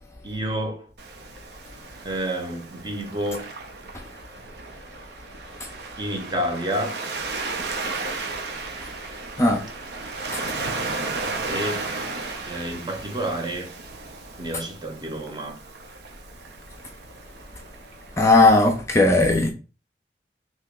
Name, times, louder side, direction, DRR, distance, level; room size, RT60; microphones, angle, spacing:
voice 1, 0.2-0.9 2.0-3.5 6.0-6.9 11.4-11.9 12.4-13.7 14.4-15.6, right 1 dB, 25° right, 0.7 m, -29 dB
Waves surf, 1.0-18.8, right 3 dB, 70° right, 0.6 m, -35 dB
voice 2, 18.2-19.5, left 2 dB, 15° left, 0.5 m, -17 dB
2.9 x 2.9 x 3.5 m
head